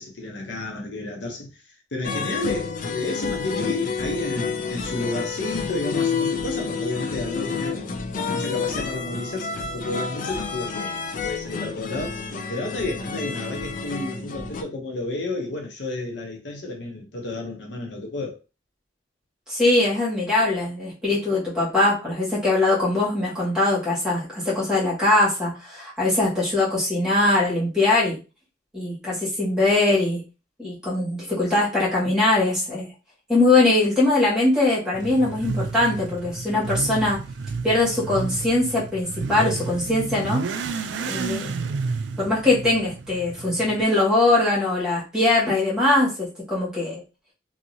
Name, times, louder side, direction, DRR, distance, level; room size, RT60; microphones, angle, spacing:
voice 1, 0.0-7.8 8.3-12.2 12.5-18.4, left 2 dB, 75° left, 0.8 m, -31 dB
sound 1, 2.0-14.6, left 5 dB, 45° left, 0.4 m, -29 dB
voice 2, 19.5-28.2 28.7-30.2 30.6-32.9 33.3-37.2 37.6-40.4 41.0-41.5 42.2-47.0, left 2 dB, 5° right, 1.6 m, -21 dB
Motorcycle / Accelerating revving vroom, 34.9-43.8, right 4 dB, 75° right, 0.4 m, -31 dB
2.8 x 2.7 x 2.7 m
head